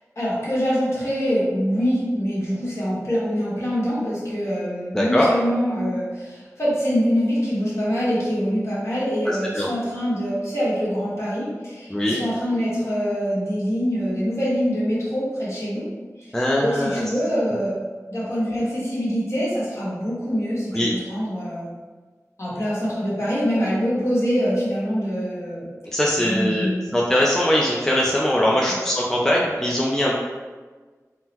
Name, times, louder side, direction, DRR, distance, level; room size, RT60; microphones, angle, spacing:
voice 1, 0.2-15.8 16.6-17.7 18.1-21.7 22.4-25.7 26.2-26.9, equal, 50° left, -8 dB, 1.2 m, -24 dB
voice 2, 4.9-5.3 9.5-9.7 11.9-12.2 16.3-17.0 20.7-20.9 25.9-30.2, left 1 dB, 10° left, -4 dB, 0.4 m, -21 dB
3.7 x 2.0 x 2.9 m, 1.4 s
wide cardioid pair, 50°, 6 cm